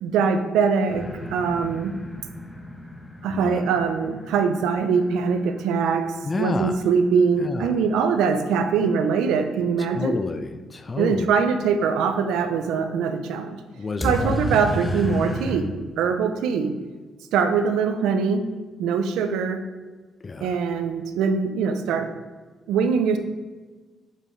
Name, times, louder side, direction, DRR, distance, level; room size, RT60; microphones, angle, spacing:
voice 1, 0.0-2.0 3.2-10.2 11.0-13.6 14.0-15.7 16.0-16.7 17.3-18.5 18.8-19.6 20.4-22.1 22.7-23.2, right 6 dB, 90° right, 8 dB, 0.6 m, -22 dB
sound 1, 0.9-6.6 14.0-15.6, equal, 5° left, 1.0 m, -33 dB
voice 2, 3.3-3.6 6.2-6.8 7.4-7.8 9.9-11.3 13.7-14.4 20.2-20.6, left 3 dB, 30° left, 9 dB, 0.4 m, -29 dB
7.5 x 5.0 x 3.3 m, 1.4 s
cardioid pair, 90°, 0 cm